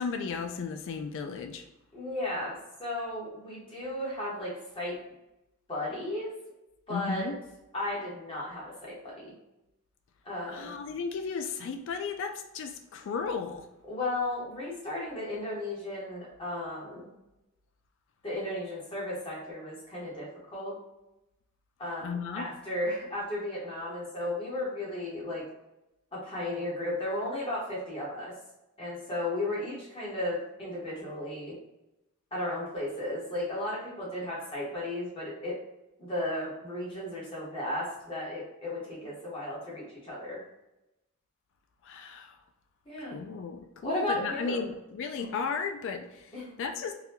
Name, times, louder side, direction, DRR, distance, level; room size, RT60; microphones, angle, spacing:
voice 1, 0.0-1.6 6.9-7.4 10.5-13.7 22.0-22.5 41.8-42.4 43.1-46.3 46.6-46.9, left 5 dB, 60° left, 7 dB, 0.3 m, -35 dB
voice 2, 1.9-5.0 5.7-6.3 6.9-7.3 7.7-9.3 10.2-10.7 13.9-17.1 18.2-20.8 21.8-25.4 26.1-28.3 28.8-31.6 32.3-35.6 36.0-40.4 42.9-43.2 43.8-44.7 45.2-45.3 46.3-46.5, left 1 dB, 25° left, -6 dB, 1.1 m, -34 dB
3.9 x 2.2 x 2.8 m, 0.93 s
head